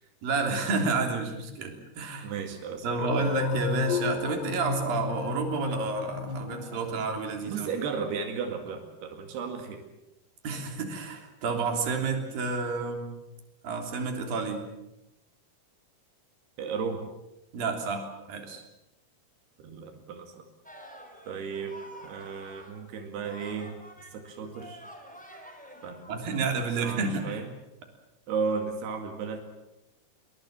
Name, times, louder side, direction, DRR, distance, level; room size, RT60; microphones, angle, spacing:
voice 1, 0.2-2.3 2.8-7.7 10.4-13.1 13.6-14.7 17.5-18.6 26.1-27.5, right 4 dB, 65° right, 3 dB, 5.0 m, -30 dB
voice 2, 2.2-3.1 7.5-9.8 16.6-17.0 19.6-20.4 21.3-23.7 24.1-24.8 25.8-26.5 26.8-27.5 28.3-29.4, right 5 dB, 90° right, 4 dB, 4.2 m, -34 dB
sound 1, 3.0-7.5, left 4 dB, 85° left, 4.1 m, -32 dB
sound 2, 20.6-22.8 23.2-27.4, equal, ahead, 3.8 m, -49 dB
23.5 x 23.0 x 7.6 m, 0.93 s
omnidirectional pair, 4.5 m